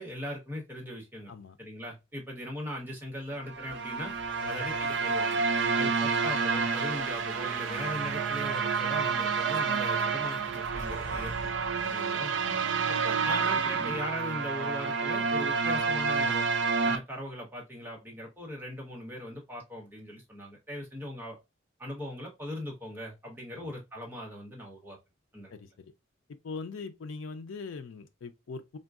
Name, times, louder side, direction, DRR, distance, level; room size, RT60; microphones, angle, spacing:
voice 1, 0.0-1.3 1.6-4.1 4.4-5.4 5.7-11.5 11.9-12.3 12.9-16.5 16.8-21.4 21.8-25.0 25.3-25.5, equal, 10° right, 1.1 m, -39 dB
sound 1, 3.0-13.0, left 1 dB, 60° left, 1.9 m, -49 dB
sound 2, 3.5-17.0, right 5 dB, 70° right, 0.4 m, -29 dB
sound 3, 9.8-14.0, right 1 dB, 35° left, 0.8 m, -51 dB
voice 2, 11.8-12.2 12.4-12.7 23.6-23.7 25.5-25.9 26.4-28.8, left 4 dB, 90° left, 0.4 m, -42 dB
3.6 x 2.2 x 2.3 m
head